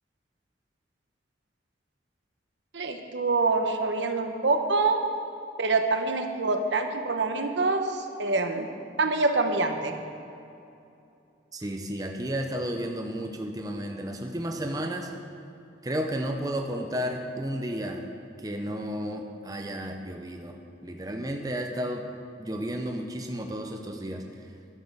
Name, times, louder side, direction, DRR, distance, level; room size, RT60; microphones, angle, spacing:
voice 1, 2.7-5.0 5.6-8.7 9.0-10.0, right 3 dB, 75° right, 5 dB, 1.0 m, -25 dB
voice 2, 11.5-15.1 15.8-18.0 18.4-20.6 20.8-22.0 22.4-24.2, equal, 20° right, 3 dB, 0.6 m, -32 dB
12.0 x 7.5 x 6.6 m, 2.7 s
head